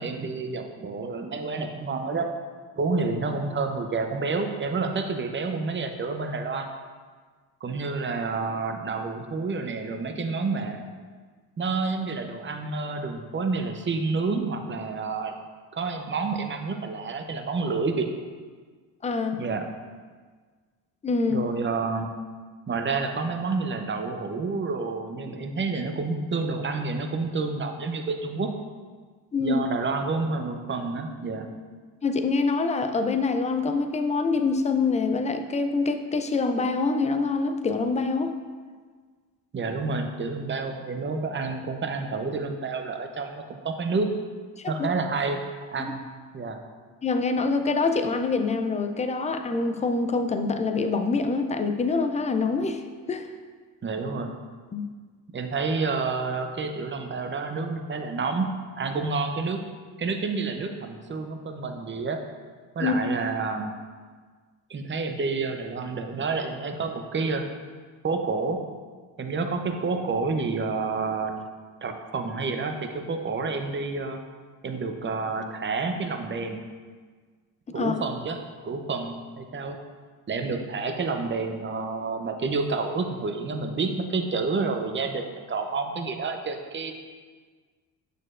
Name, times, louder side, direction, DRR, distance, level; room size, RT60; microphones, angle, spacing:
voice 1, 0.0-2.3 2.8-6.7 7.6-10.8 11.6-15.3 15.7-18.1 19.4-19.7 21.3-22.1 22.7-28.5 29.4-31.5 39.5-44.1 44.7-45.4 45.7-46.0 46.3-46.6 53.8-54.3 55.3-58.5 58.8-59.6 60.0-62.2 62.7-63.7 64.7-67.5 68.0-68.6 69.2-71.3 71.8-74.2 74.6-76.6 77.7-78.4 78.6-79.8 80.3-86.9, right 4 dB, 25° right, 5 dB, 0.7 m, -29 dB
voice 2, 19.0-19.4 21.0-21.5 29.3-29.6 32.0-38.3 44.6-44.9 45.8-45.9 47.0-53.3 54.7-54.9 62.8-63.0 77.8-77.9, left 4 dB, 15° left, 7 dB, 0.4 m, -25 dB
6.7 x 6.2 x 2.5 m, 1.5 s
supercardioid pair, 75°, 44 cm